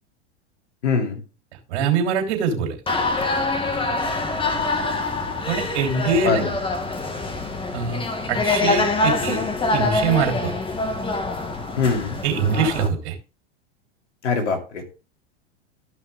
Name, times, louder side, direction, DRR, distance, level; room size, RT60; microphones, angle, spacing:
voice 1, 0.8-1.2 6.2-6.5 11.8-12.2 14.2-14.8, left 5 dB, 85° left, 3 dB, 2.8 m, -22 dB
voice 2, 1.7-2.8 5.4-6.4 7.7-8.0 8.3-9.4 9.7-10.5 12.2-13.1, right 5 dB, 65° right, 1 dB, 3.3 m, -23 dB
sound 1, 2.9-12.9, left 3 dB, 15° left, 1.6 m, -25 dB
14.0 x 5.8 x 3.5 m, 0.33 s
hypercardioid pair, 100°, 35 cm